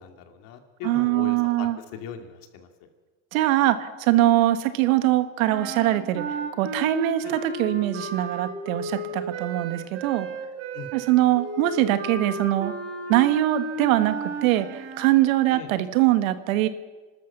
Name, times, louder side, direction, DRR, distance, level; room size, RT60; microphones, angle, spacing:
voice 1, 0.0-2.7 7.2-7.3 10.7-10.9 15.5-15.7, left 7 dB, 55° left, 6 dB, 2.5 m, -39 dB
voice 2, 0.8-1.8 3.3-10.3 10.9-12.7 13.1-16.7, right 14 dB, 85° right, 11 dB, 1.5 m, -22 dB
sound 1, 5.5-15.1, right 2 dB, 40° right, 2.7 m, -34 dB
29.5 x 13.0 x 6.8 m, 1.4 s
supercardioid pair, 150°, 40 cm